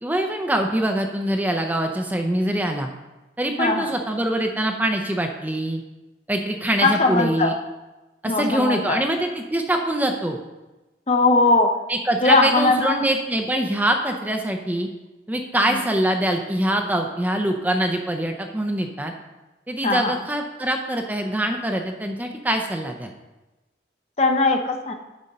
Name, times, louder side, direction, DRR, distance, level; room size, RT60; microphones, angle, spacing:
voice 1, 0.0-2.9 3.4-5.8 6.3-7.5 8.2-10.4 11.9-14.9 15.3-19.1 19.7-23.1, right 1 dB, 10° right, 4 dB, 0.6 m, -24 dB
voice 2, 3.6-3.9 6.8-7.5 8.3-9.0 11.1-11.7 12.2-13.0 15.7-15.8 19.8-20.2 24.2-24.9, left 3 dB, 35° left, 5 dB, 0.8 m, -19 dB
10.5 x 4.4 x 5.4 m, 1.1 s
head